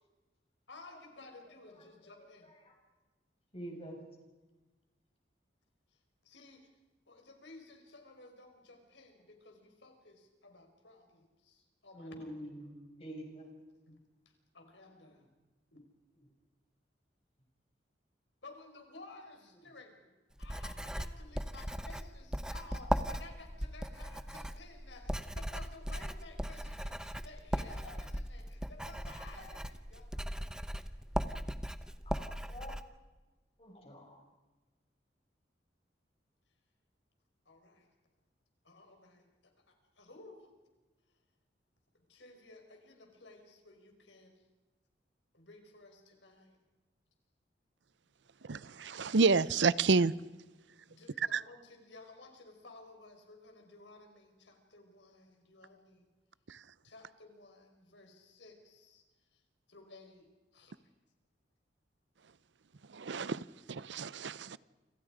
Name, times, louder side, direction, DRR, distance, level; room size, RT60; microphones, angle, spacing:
voice 1, 0.7-2.5 5.9-6.7 7.1-12.3 12.8-13.3 13.9-14.0 14.3-15.3 15.7-15.8 18.4-20.1 20.4-31.7 37.5-37.9 38.6-40.5 41.1-41.2 41.9-44.5 45.3-46.6 50.9-56.1 56.8-59.4 59.7-60.3 60.5-60.7, left 3 dB, 90° left, 5.2 m, -55 dB
voice 2, 1.7-2.8 3.5-4.0 11.9-13.5 32.1-32.8 33.6-34.2, equal, 35° left, 6.0 m, -47 dB
Writing, 20.4-32.8, equal, 5° right, 0.9 m, -38 dB
voice 3, 48.5-50.1 51.3-51.4 62.9-63.4 63.7-64.6, right 4 dB, 80° right, 0.7 m, -29 dB
28.5 x 26.5 x 5.1 m
head